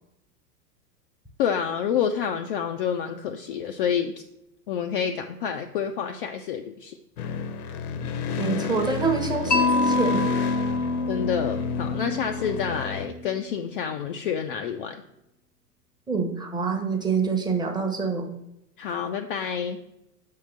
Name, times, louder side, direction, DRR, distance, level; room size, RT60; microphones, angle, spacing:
voice 1, 1.4-4.2 4.7-7.0 11.1-15.0 18.8-19.8, left 7 dB, 35° left, 5 dB, 0.4 m, -28 dB
sound 1, 7.2-13.1, left 6 dB, 65° left, 0.8 m, -31 dB
voice 2, 8.4-10.3 16.1-18.3, right 5 dB, 10° right, 3 dB, 0.9 m, -26 dB
Mallet percussion, 9.5-13.5, left 3 dB, 90° left, 0.9 m, -27 dB
6.8 x 3.7 x 6.3 m, 0.87 s
figure-of-eight pair, 100°, 49 cm